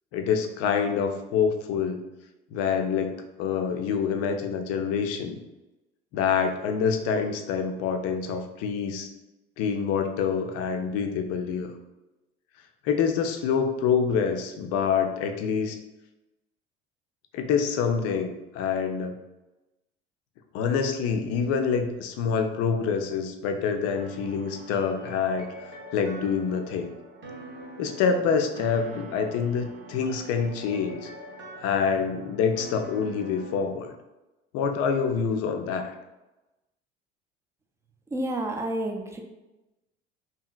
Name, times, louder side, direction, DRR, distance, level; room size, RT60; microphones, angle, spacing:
voice 1, 0.1-2.0 2.5-5.4 6.1-9.1 9.6-11.7 12.8-15.8 17.3-19.1 20.5-25.4 25.9-26.9 27.8-31.1 31.6-33.9 34.5-35.9, left 6 dB, 50° left, 5 dB, 0.5 m, -26 dB
sound 1, 23.9-33.6, right 1 dB, 40° right, 0.7 m, -44 dB
voice 2, 38.1-39.2, right 1 dB, 10° right, 2 dB, 0.4 m, -30 dB
2.8 x 2.7 x 2.4 m, 1.0 s
hypercardioid pair, 60°, 30 cm